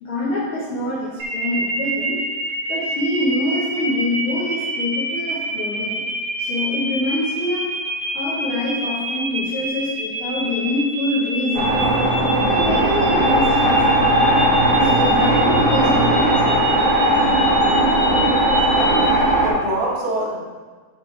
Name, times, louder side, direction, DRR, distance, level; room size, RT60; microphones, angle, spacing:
voice 1, 0.0-2.2 2.7-6.1 6.4-7.7 8.1-11.8 12.2-14.3 14.8-16.6, left 1 dB, 75° left, -7 dB, 1.2 m, -25 dB
sound 1, 1.2-19.1, right 1 dB, 65° right, 1.5 m, -27 dB
sound 2, 11.5-19.5, right 1 dB, 35° right, 2.8 m, -17 dB
voice 2, 18.5-19.1 19.4-20.4, right 2 dB, 80° right, -4 dB, 3.5 m, -26 dB
7.7 x 6.2 x 3.3 m, 1.4 s
omnidirectional pair, 4.4 m